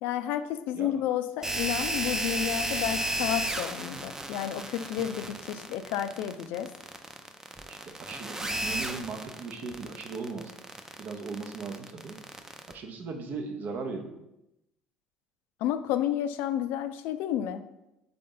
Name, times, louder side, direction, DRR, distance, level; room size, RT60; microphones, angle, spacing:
voice 1, 0.0-6.7 15.6-17.7, left 10 dB, 70° left, 10 dB, 0.3 m, -31 dB
sound 1, 1.4-12.7, right 1 dB, 15° right, 0.5 m, -33 dB
voice 2, 7.7-10.5 11.0-12.2 12.7-14.1, right 4 dB, 55° right, 5 dB, 0.7 m, -38 dB
3.8 x 3.7 x 3.8 m, 0.89 s
hypercardioid pair, 65°, 3 cm